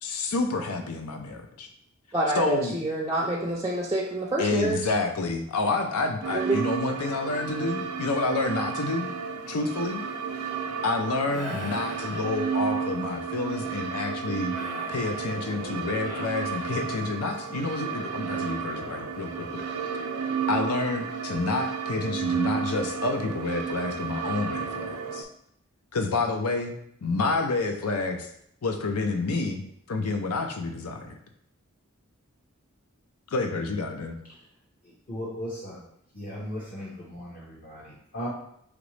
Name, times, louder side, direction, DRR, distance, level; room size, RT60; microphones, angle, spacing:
voice 1, 0.0-1.7 2.4-2.8 4.4-9.1 9.5-10.0 10.8-14.5 14.9-19.6 19.9-20.1 20.5-25.3 25.9-26.7 27.0-28.3 28.6-31.2 33.3-34.2, left 3 dB, 85° left, 5 dB, 0.5 m, -29 dB
voice 2, 2.1-4.9 6.3-6.6, right 2 dB, 15° right, -2 dB, 0.4 m, -27 dB
sound 1, 6.2-25.2, right 6 dB, 90° right, 0.5 m, -32 dB
sound 2, 11.3-12.8 14.5-17.2, equal, 65° left, 1.5 m, -42 dB
voice 3, 34.8-35.8 36.1-38.3, equal, 40° left, -5 dB, 0.7 m, -37 dB
5.1 x 3.0 x 3.1 m, 0.72 s
head